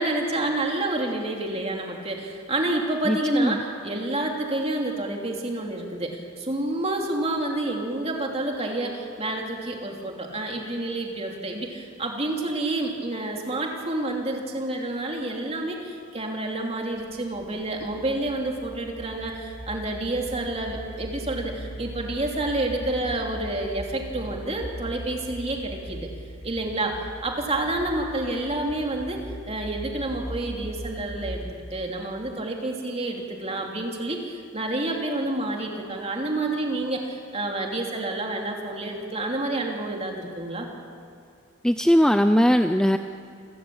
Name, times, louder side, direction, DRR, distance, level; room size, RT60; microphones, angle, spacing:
voice 1, 0.0-26.1 26.4-40.7, right 2 dB, 30° right, 1 dB, 3.0 m, -29 dB
voice 2, 3.1-3.6 41.6-43.0, equal, 5° left, 8 dB, 0.5 m, -19 dB
sound 1, 16.9-31.8, equal, 75° left, 7.1 m, -40 dB
28.0 x 15.0 x 8.8 m, 2.4 s
head